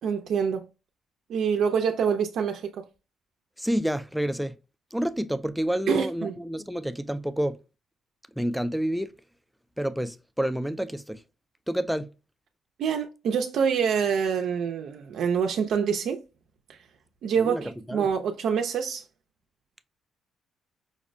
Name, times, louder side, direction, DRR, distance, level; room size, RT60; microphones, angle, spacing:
voice 1, 0.0-0.7 1.3-2.8 5.9-6.4 12.8-16.2 16.7-16.8 17.2-19.0, right 7 dB, 75° right, 0.4 m, -26 dB
voice 2, 3.6-4.5 4.9-7.6 8.4-9.1 9.8-11.2 11.7-12.1 17.4-18.1, equal, ahead, 0.3 m, -29 dB
5.1 x 2.0 x 2.5 m
cardioid pair, 90°, 0 cm